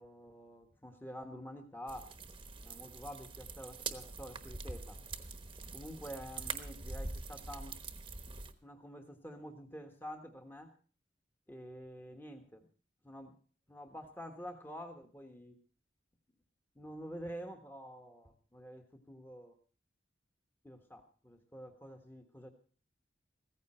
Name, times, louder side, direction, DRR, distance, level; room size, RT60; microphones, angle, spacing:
voice 1, 0.0-2.1 2.6-5.0 5.7-7.8 8.6-10.7 11.5-12.7 13.0-13.3 13.7-15.6 16.7-19.6 20.6-22.5, equal, 10° left, 3 dB, 1.3 m, -48 dB
sound 1, 1.9-8.5, right 4 dB, 25° right, 1.1 m, -44 dB
15.5 x 14.5 x 4.4 m, 0.41 s
head